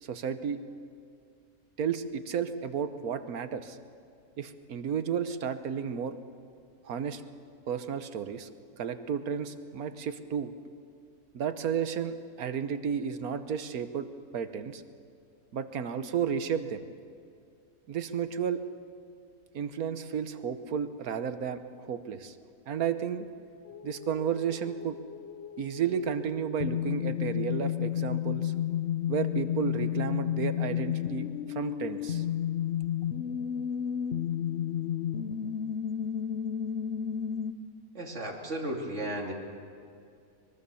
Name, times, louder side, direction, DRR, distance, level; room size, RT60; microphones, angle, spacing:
voice 1, 0.0-0.6 1.8-3.8 4.4-6.2 6.8-7.2 7.7-8.5 8.8-10.5 11.3-14.1 14.3-14.8 15.5-16.8 17.9-18.6 19.5-22.3 22.7-23.3 23.8-25.0 25.6-28.5 29.1-32.2, right 7 dB, 80° right, 10 dB, 1.5 m, -32 dB
sound 1, 23.7-37.5, left 10 dB, 55° left, 0.9 m, -32 dB
voice 2, 37.9-39.3, right 1 dB, 55° right, 0 dB, 3.0 m, -34 dB
24.0 x 21.5 x 7.0 m, 2.4 s
omnidirectional pair, 1.5 m